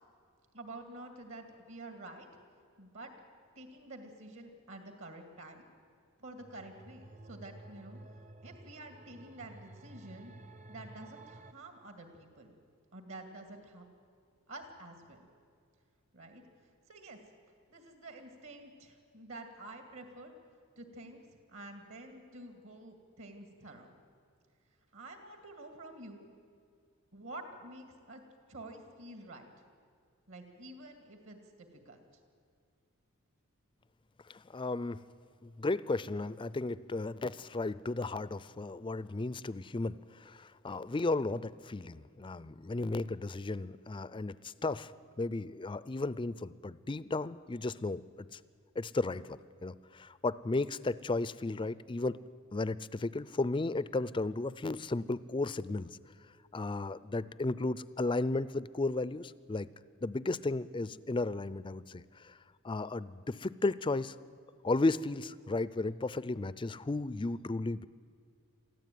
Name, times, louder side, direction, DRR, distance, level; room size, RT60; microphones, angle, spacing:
voice 1, 0.5-2.3 2.8-3.1 3.6-5.7 6.2-8.0 8.4-10.3 10.7-12.5 12.9-13.8 14.5-15.3 16.1-16.4 16.9-17.2 17.7-20.3 20.8-23.9 24.9-26.3 27.1-28.2 28.5-29.5 30.3-32.0, right 2 dB, 65° right, 6 dB, 2.4 m, -49 dB
sound 1, 6.4-11.5, right 2 dB, 35° right, 0.7 m, -52 dB
voice 2, 34.3-35.0 35.4-44.9 45.2-48.4 48.8-52.2 52.5-55.9 56.5-59.7 60.0-62.3 62.6-64.1 64.6-67.9, left 2 dB, 20° left, 17 dB, 0.4 m, -34 dB
23.0 x 14.5 x 9.3 m, 2.2 s
head